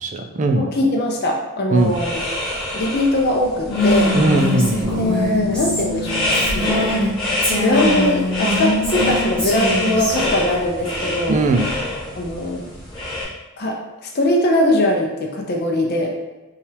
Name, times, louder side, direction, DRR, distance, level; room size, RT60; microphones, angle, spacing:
voice 1, 0.0-0.6 1.7-2.0 4.1-4.9 11.3-11.7, right 2 dB, 35° right, 4 dB, 0.4 m, -19 dB
voice 2, 0.5-2.2 2.7-4.2 4.9-6.8 7.6-11.4 12.1-12.6 13.6-16.1, left 1 dB, 45° left, 0 dB, 0.5 m, -21 dB
sound 1, 1.7-13.2, left 1 dB, 20° left, 1.4 m, -26 dB
Female speech woman speaking, 3.6-7.1 7.4-10.1, left 1 dB, 5° left, 1.3 m, -22 dB
Bass guitar, 4.8-8.5, left 2 dB, 10° right, 1.0 m, -30 dB
5.5 x 2.4 x 3.3 m, 1.1 s
head